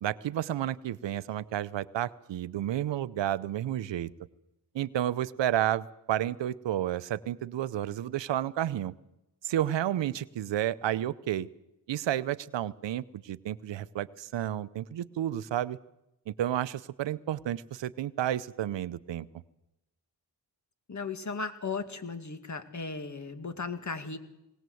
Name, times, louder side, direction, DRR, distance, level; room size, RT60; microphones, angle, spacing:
voice 1, 0.0-4.1 4.7-8.9 9.4-11.5 11.9-15.8 16.3-19.3, right 12 dB, 90° right, 17 dB, 0.8 m, -31 dB
voice 2, 20.9-24.2, left 4 dB, 40° left, 9 dB, 2.2 m, -36 dB
20.5 x 18.5 x 7.9 m, 0.90 s
cardioid pair, 90°, 42 cm